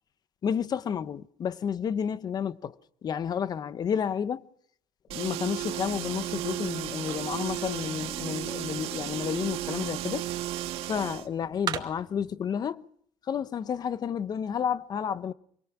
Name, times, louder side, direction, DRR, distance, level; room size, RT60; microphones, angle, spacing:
voice 1, 0.4-2.8 3.0-4.4 5.1-10.3 10.9-12.9 13.3-15.3, left 7 dB, 40° left, 1.1 m, -31 dB
sound 1, 5.1-11.3, right 13 dB, 70° right, 1.9 m, -34 dB
sound 2, 5.5-12.3, right 8 dB, 45° right, 2.3 m, -43 dB
26.0 x 24.0 x 6.1 m
supercardioid pair, 100°, 10 cm